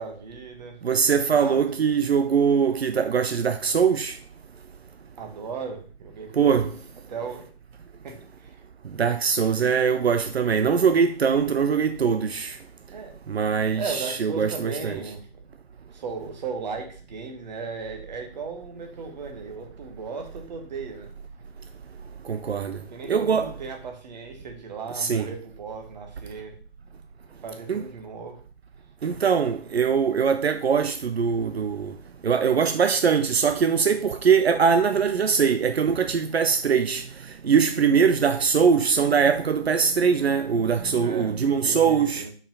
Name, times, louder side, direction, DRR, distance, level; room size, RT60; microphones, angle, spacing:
voice 1, 0.0-0.8 1.3-1.7 5.2-6.7 7.1-7.5 8.0-8.6 12.9-13.1 13.7-15.3 15.9-21.1 22.9-26.5 27.4-28.4 40.8-42.3, right 5 dB, 45° right, 1.7 m, -36 dB
voice 2, 0.8-4.2 6.3-6.7 9.0-12.6 13.3-15.0 22.2-22.8 23.1-23.5 24.9-25.3 27.7-27.8 29.0-31.9 32.2-37.1 37.4-42.2, right 6 dB, 80° right, 0.7 m, -22 dB
5.5 x 4.8 x 5.4 m
figure-of-eight pair, 150°, 31 cm